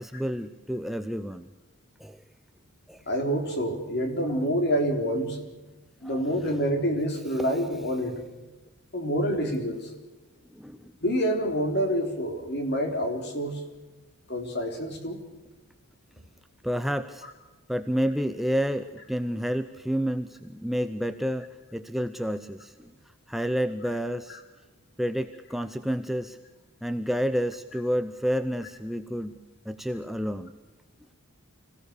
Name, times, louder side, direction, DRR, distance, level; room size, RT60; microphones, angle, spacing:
voice 1, 0.0-1.5 2.0-2.2 2.9-3.0 6.0-6.2 10.5-10.9 16.6-17.3 17.7-22.9 23.3-24.4 25.0-26.4 26.8-29.3 29.7-30.5, equal, ahead, 8 dB, 0.6 m, -29 dB
voice 2, 3.1-5.4 6.0-8.2 8.9-9.9 11.0-13.6 14.3-15.2, equal, 50° left, 4 dB, 3.8 m, -27 dB
25.5 x 17.0 x 6.7 m, 1.1 s
head